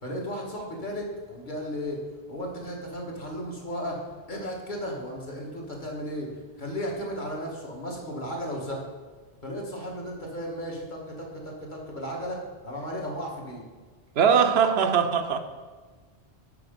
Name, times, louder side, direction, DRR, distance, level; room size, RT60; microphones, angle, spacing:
voice 1, 0.0-2.0 2.3-4.0 4.3-6.3 6.6-8.8 9.4-12.4 12.6-13.6, equal, 50° left, -2 dB, 1.7 m, -34 dB
voice 2, 14.2-15.4, right 7 dB, 75° right, 8 dB, 0.9 m, -21 dB
7.0 x 5.4 x 5.1 m, 1.4 s
omnidirectional pair, 1.1 m